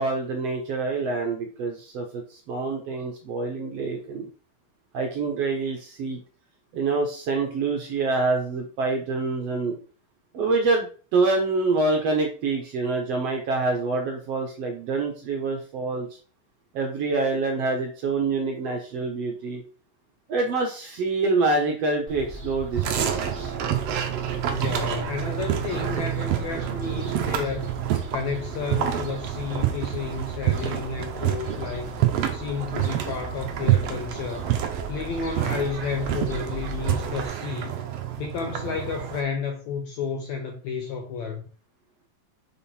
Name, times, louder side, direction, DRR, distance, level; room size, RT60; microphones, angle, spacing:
voice 1, 0.0-4.3 4.9-6.2 6.7-9.7 10.3-16.1 16.7-19.6 20.3-23.5, right 3 dB, 65° right, 1.6 m, -26 dB
Fowl, 22.1-37.3, right 1 dB, 30° right, 1.3 m, -40 dB
sound 1, 22.7-39.2, right 11 dB, 85° right, 1.3 m, -28 dB
voice 2, 24.5-27.8 28.1-31.9 32.3-34.5 34.9-37.8 38.2-41.4, left 5 dB, 80° left, 1.7 m, -31 dB
6.7 x 3.6 x 4.2 m
omnidirectional pair, 4.0 m